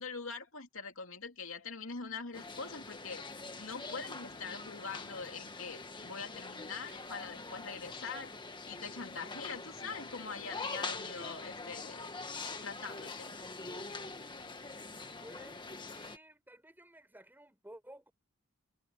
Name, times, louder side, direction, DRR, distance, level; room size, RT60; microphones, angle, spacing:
voice 1, 0.0-3.2 3.6-8.4 8.7-12.1 12.6-13.3, left 5 dB, 65° left, 3.0 m, -43 dB
sound 1, 2.3-16.2, left 3 dB, 20° left, 1.6 m, -44 dB
voice 2, 15.2-18.1, right 1 dB, 10° right, 6.7 m, -54 dB
head